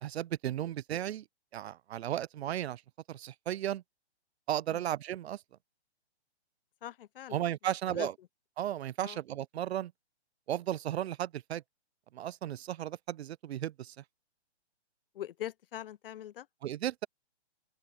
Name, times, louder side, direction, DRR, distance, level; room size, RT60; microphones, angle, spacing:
voice 1, 0.0-1.2 1.5-2.8 3.1-3.8 4.5-5.4 7.3-8.1 8.6-9.9 10.5-11.6 12.1-13.9 16.6-17.1, right 12 dB, 65° right, 0.5 m, -35 dB
voice 2, 6.8-7.4 7.9-8.1 9.0-9.2 15.1-16.5, left 11 dB, 55° left, 0.5 m, -42 dB
open air
hypercardioid pair, 145°, 34 cm